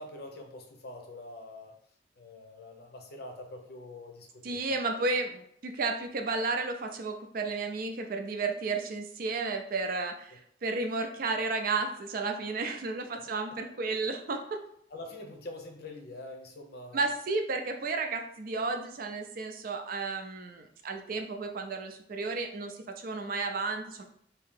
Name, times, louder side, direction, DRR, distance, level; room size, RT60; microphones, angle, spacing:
voice 1, 0.0-1.7 2.2-4.6 13.1-13.2 14.9-17.1, left 2 dB, 60° left, 3 dB, 0.7 m, -45 dB
voice 2, 4.4-14.6 16.9-24.0, right 3 dB, 55° right, 5 dB, 0.4 m, -33 dB
2.8 x 2.7 x 3.6 m, 0.65 s
head